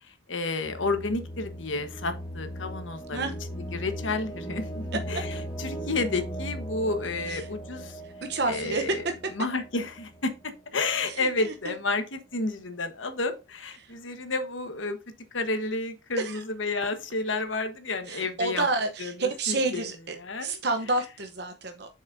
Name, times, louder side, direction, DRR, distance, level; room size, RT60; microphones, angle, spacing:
voice 1, 0.0-3.2 3.7-8.0 8.5-9.1 9.3-10.3 10.7-15.0 15.3-18.7 19.0-19.9 20.2-20.5, left 3 dB, 80° left, 1.3 m, -31 dB
sound 1, 0.6-10.5, equal, 20° left, 1.1 m, -38 dB
voice 2, 8.3-8.8 11.0-11.7 13.8-13.9 16.2-16.4 18.1-21.9, right 3 dB, 55° right, 0.9 m, -30 dB
8.3 x 6.4 x 2.7 m
head